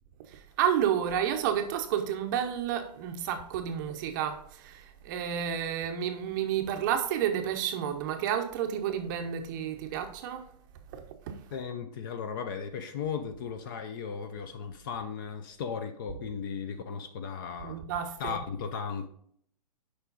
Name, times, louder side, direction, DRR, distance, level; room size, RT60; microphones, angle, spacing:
voice 1, 0.3-10.4 10.9-11.4 17.6-18.4, right 9 dB, 30° right, 0.7 m, -31 dB
voice 2, 11.5-17.8 18.2-19.1, left 6 dB, 30° left, 0.5 m, -36 dB
7.1 x 5.0 x 3.9 m
hypercardioid pair, 160°, 21 cm